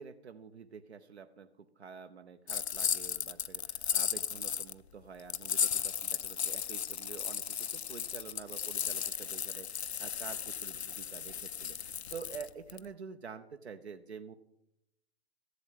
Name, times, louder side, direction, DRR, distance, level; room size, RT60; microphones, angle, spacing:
voice 1, 0.0-14.3, right 6 dB, 80° right, 7 dB, 0.8 m, -48 dB
sound 1, 2.5-4.7 5.3-12.8, left 8 dB, 80° left, 0.6 m, -35 dB
13.5 x 8.0 x 8.0 m, 0.83 s
figure-of-eight pair, 105°, 32 cm